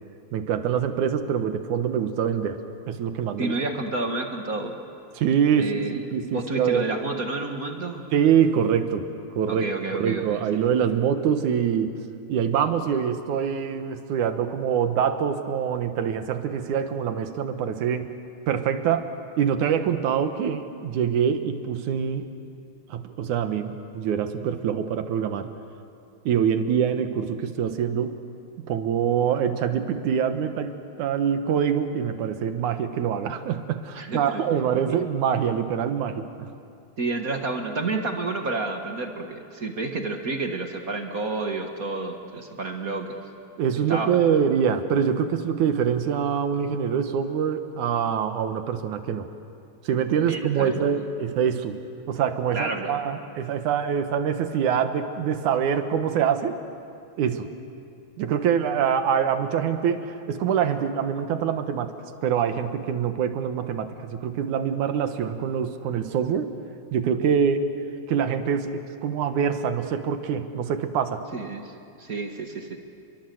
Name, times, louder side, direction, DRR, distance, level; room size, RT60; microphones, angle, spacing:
voice 1, 0.3-2.6 2.9-3.5 5.2-6.9 8.1-9.1 9.3-9.6 10.0-11.9 12.3-18.1 18.5-19.1 19.4-22.3 22.9-25.5 26.3-28.2 28.7-36.5 43.6-49.3 49.8-51.8 52.1-56.6 57.2-57.5 58.2-61.9 62.2-66.5 66.9-67.7 68.1-71.2, right 8 dB, 80° right, 8 dB, 2.7 m, -25 dB
voice 2, 3.4-4.8 5.6-6.0 6.3-8.1 9.5-10.4 33.9-35.0 37.0-43.2 43.9-44.4 50.2-51.1 52.5-53.0 71.3-72.8, right 3 dB, 35° right, 4 dB, 1.6 m, -30 dB
29.5 x 23.0 x 7.8 m, 2.5 s
omnidirectional pair, 3.4 m